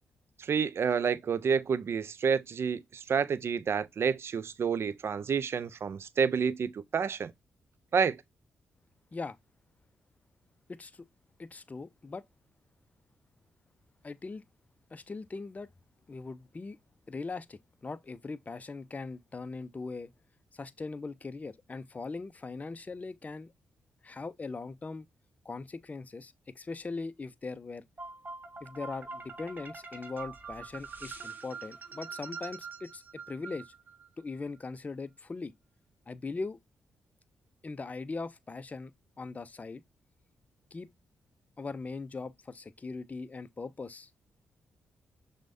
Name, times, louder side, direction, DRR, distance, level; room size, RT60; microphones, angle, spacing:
voice 1, 0.4-7.3 7.9-8.2, right 6 dB, 55° right, 0.4 m, -29 dB
voice 2, 10.7-11.1 11.4-12.2 14.0-14.4 14.9-15.7 16.1-16.8 17.1-20.1 20.5-23.5 24.0-25.1 25.5-27.8 28.6-33.7 34.2-35.5 36.1-36.6 37.6-38.9 39.2-39.8 40.7-40.9 41.6-44.1, left 3 dB, 30° left, 0.4 m, -40 dB
sound 1, 28.0-34.1, right 4 dB, 35° right, 0.8 m, -44 dB
6.1 x 2.1 x 2.4 m
hypercardioid pair, 40°, 5 cm